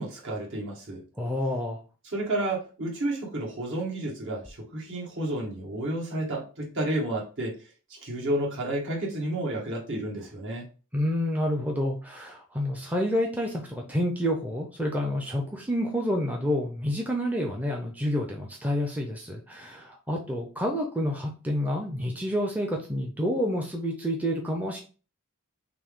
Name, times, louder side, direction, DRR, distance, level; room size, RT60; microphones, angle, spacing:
voice 1, 0.0-1.0 2.1-7.5 7.9-10.6, right 1 dB, 60° right, -3 dB, 1.7 m, -31 dB
voice 2, 1.2-1.8 10.9-24.8, equal, 5° right, 0 dB, 0.6 m, -29 dB
5.8 x 2.1 x 3.6 m, 0.36 s
head